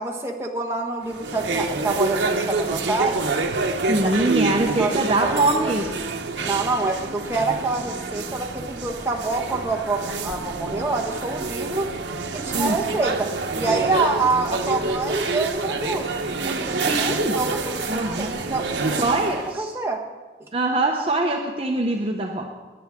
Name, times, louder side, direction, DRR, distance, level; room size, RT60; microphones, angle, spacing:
voice 1, 0.0-3.3 4.0-5.7 6.4-11.9 12.3-16.1 16.4-17.6 17.9-19.0 19.5-20.0, right 3 dB, 15° right, 1 dB, 1.1 m, -27 dB
sound 1, 1.0-19.5, right 3 dB, 80° right, 0.9 m, -27 dB
voice 2, 3.9-6.0 12.5-12.8 16.8-17.4 17.9-18.3 19.0-19.7 20.5-22.5, right 2 dB, 30° right, 1 dB, 0.8 m, -23 dB
18.0 x 10.0 x 3.6 m, 1.3 s
head